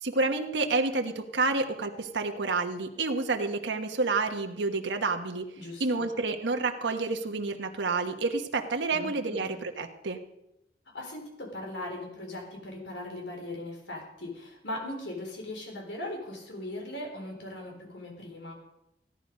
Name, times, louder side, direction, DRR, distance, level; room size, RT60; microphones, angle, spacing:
voice 1, 0.0-5.5 5.8-10.2, right 3 dB, 85° right, 4 dB, 1.2 m, -29 dB
voice 2, 5.6-6.1 8.9-9.5 10.9-18.5, left 1 dB, 85° left, 2 dB, 4.2 m, -39 dB
16.0 x 11.0 x 5.3 m, 0.87 s
head